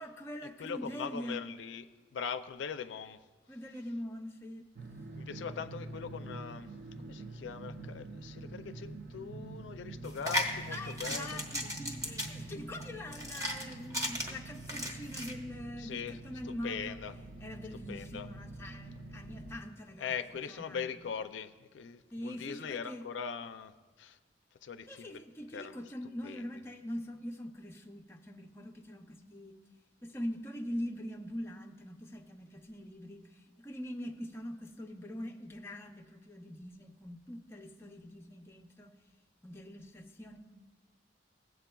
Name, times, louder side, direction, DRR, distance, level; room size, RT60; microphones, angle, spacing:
voice 1, 0.0-1.4 3.5-4.7 10.7-17.0 17.4-20.9 22.1-23.0 24.9-29.5 30.0-38.9 39.4-40.4, equal, 15° left, 2 dB, 0.5 m, -43 dB
voice 2, 0.6-1.9 2.1-3.2 5.1-6.7 7.0-11.4 15.8-16.2 16.4-17.1 17.9-18.3 20.0-24.2 24.6-25.2 25.5-25.7 26.2-26.5, left 6 dB, 70° left, 9 dB, 0.4 m, -41 dB
sound 1, 4.8-19.6, right 2 dB, 50° right, 0.5 m, -46 dB
sound 2, 10.0-15.3, equal, 20° right, 1.0 m, -36 dB
17.0 x 7.6 x 2.3 m, 1.4 s
head